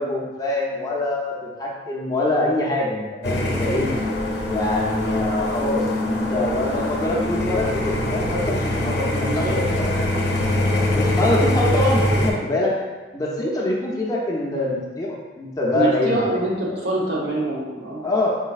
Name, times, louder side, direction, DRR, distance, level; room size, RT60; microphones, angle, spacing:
voice 1, 0.0-3.9 4.5-10.1 10.9-12.7 13.1-16.2 16.7-16.8 18.0-18.3, left 2 dB, 20° left, -4 dB, 0.5 m, -24 dB
sound 1, 3.2-12.3, left 1 dB, 65° left, 0.6 m, -23 dB
voice 2, 9.1-9.6 15.7-18.0, right 2 dB, 80° right, -4 dB, 0.9 m, -25 dB
4.0 x 3.6 x 2.4 m, 1.3 s
head